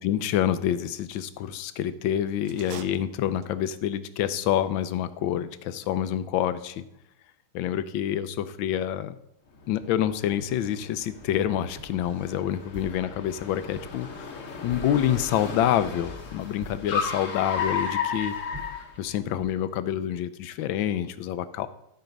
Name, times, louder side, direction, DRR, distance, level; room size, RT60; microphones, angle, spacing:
voice 1, 0.0-6.8 7.5-9.1 9.7-14.3 14.6-18.3 19.0-21.7, left 10 dB, 75° left, 13 dB, 1.3 m, -27 dB
sound 1, 2.4-3.8, right 10 dB, 75° right, 1.4 m, -44 dB
Car, 9.6-19.5, left 6 dB, 50° left, 1.1 m, -34 dB
sound 2, 11.8-19.1, equal, 45° right, 2.2 m, -46 dB
13.0 x 4.4 x 5.2 m, 0.79 s
omnidirectional pair, 2.3 m